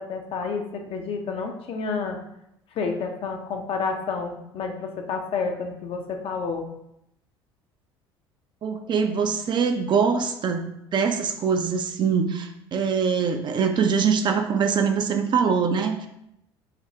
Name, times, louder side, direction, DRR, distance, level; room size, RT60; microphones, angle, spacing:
voice 1, 0.0-2.2 2.8-6.7, left 5 dB, 45° left, 3 dB, 0.6 m, -30 dB
voice 2, 8.6-16.1, right 6 dB, 35° right, 6 dB, 0.4 m, -23 dB
4.9 x 2.0 x 2.7 m, 0.80 s
figure-of-eight pair, 60°, 14 cm